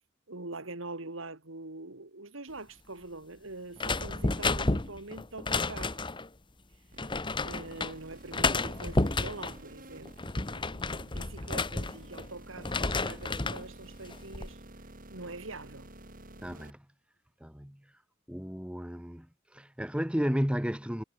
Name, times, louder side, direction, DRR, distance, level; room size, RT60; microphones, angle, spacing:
voice 1, 0.3-6.0 7.4-10.1 10.4-14.6 15.1-15.9, right 2 dB, 90° right, 3.0 m, -44 dB
sound 1, 3.8-6.3 7.0-7.9 8.3-9.6 10.1-12.3 12.6-13.7 14.1-14.5, left 3 dB, 25° left, 1.2 m, -31 dB
sound 2, 6.9-16.7, right 1 dB, 45° right, 4.0 m, -51 dB
voice 2, 16.4-16.8 17.4-17.8 18.3-19.3 19.5-21.0, equal, 5° right, 1.7 m, -32 dB
head